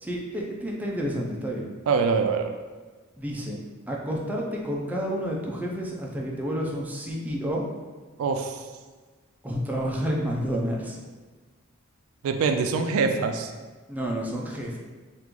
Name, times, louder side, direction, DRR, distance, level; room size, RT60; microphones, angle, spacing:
voice 1, 0.0-1.7 3.2-3.6 3.9-7.6 9.4-11.0 13.9-14.8, equal, 10° right, -3 dB, 0.4 m, -30 dB
voice 2, 1.9-2.5 8.2-8.7 12.2-13.5, right 5 dB, 90° right, 6 dB, 0.3 m, -24 dB
3.0 x 2.5 x 3.5 m, 1.3 s
head